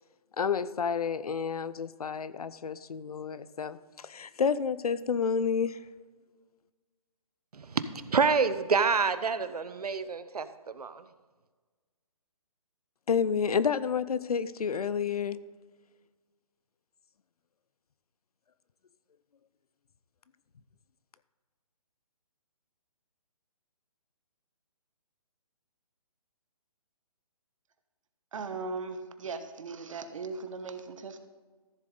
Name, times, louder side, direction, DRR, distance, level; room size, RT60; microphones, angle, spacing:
voice 1, 0.4-5.8 13.1-15.4, left 6 dB, 75° left, 16 dB, 0.6 m, -30 dB
voice 2, 7.5-11.0, right 5 dB, 80° right, 13 dB, 0.8 m, -28 dB
voice 3, 28.3-31.2, right 4 dB, 55° right, 9 dB, 1.2 m, -38 dB
14.0 x 7.3 x 3.8 m, 1.4 s
hypercardioid pair, 150°, 19 cm